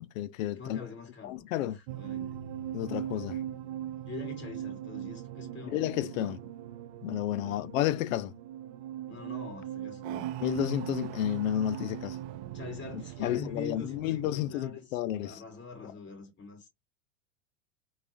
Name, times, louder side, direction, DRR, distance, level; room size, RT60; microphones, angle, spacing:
voice 1, 0.0-0.9 1.2-1.8 2.7-3.4 5.7-6.4 7.0-8.3 10.4-12.2 12.9-15.4 15.8-15.9, left 12 dB, 85° left, 0.5 m, -31 dB
voice 2, 0.6-2.3 4.0-6.3 7.4-7.7 9.1-10.3 12.5-16.7, left 4 dB, 30° left, 2.4 m, -44 dB
sound 1, 1.9-14.6, right 11 dB, 60° right, 0.5 m, -40 dB
3.6 x 2.4 x 3.4 m
hypercardioid pair, 105°, 39 cm